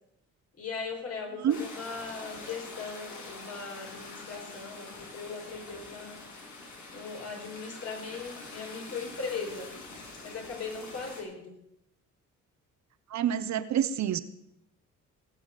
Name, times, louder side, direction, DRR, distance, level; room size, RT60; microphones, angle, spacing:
voice 1, 0.6-6.2 6.9-9.7 10.2-11.5, left 4 dB, 50° left, 1 dB, 5.6 m, -39 dB
sound 1, 1.5-11.2, left 3 dB, 80° left, 6.5 m, -45 dB
voice 2, 13.1-14.2, right 10 dB, 65° right, 13 dB, 1.2 m, -27 dB
19.5 x 7.0 x 8.4 m, 0.81 s
cardioid pair, 90°, 30 cm